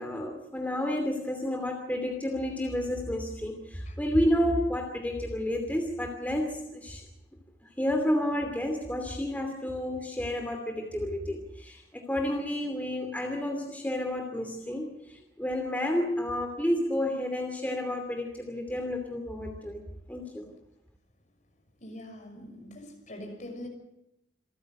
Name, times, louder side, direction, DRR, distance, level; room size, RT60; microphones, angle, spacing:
voice 1, 0.0-7.0 7.6-20.5, left 1 dB, 10° left, 2.7 m, -30 dB
voice 2, 21.8-23.7, left 1 dB, 40° left, 6.2 m, -43 dB
27.5 x 14.5 x 7.7 m
head